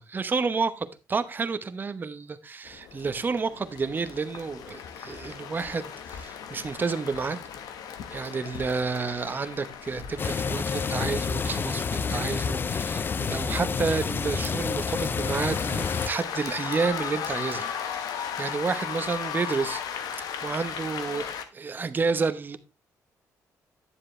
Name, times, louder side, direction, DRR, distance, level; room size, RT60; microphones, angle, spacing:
voice 1, 0.0-7.4 8.1-19.8 20.1-21.3 21.5-22.6, right 4 dB, 30° right, 0.9 m, -30 dB
sound 1, 2.7-21.4, left 8 dB, 85° left, 1.2 m, -37 dB
sound 2, 10.2-16.1, left 6 dB, 35° left, 0.4 m, -28 dB
10.0 x 7.5 x 3.2 m
cardioid pair, 110°, 6 cm